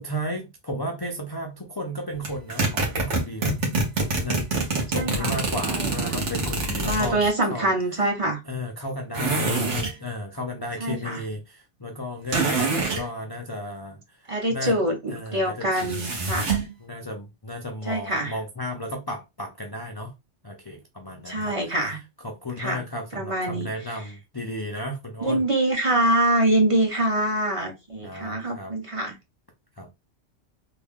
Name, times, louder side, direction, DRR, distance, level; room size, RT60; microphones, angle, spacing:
voice 1, 0.0-3.6 4.2-4.4 4.9-7.2 7.5-7.7 8.5-14.8 15.1-16.0 16.8-20.1 20.4-21.9 22.2-25.5 28.0-28.7 29.8-29.9, left 1 dB, 35° left, 0.4 m, -34 dB
sound 1, 2.2-7.3 9.1-10.0 12.3-13.0 15.7-16.7, right 3 dB, 80° right, 1.3 m, -25 dB
voice 2, 4.9-5.3 5.7-6.1 6.9-8.4 10.8-11.2 14.3-16.5 17.9-18.3 21.3-22.0 22.6-22.8 23.1-23.7 25.2-29.2, right 1 dB, 35° right, 0.7 m, -24 dB
3.3 x 2.3 x 3.5 m
omnidirectional pair, 1.2 m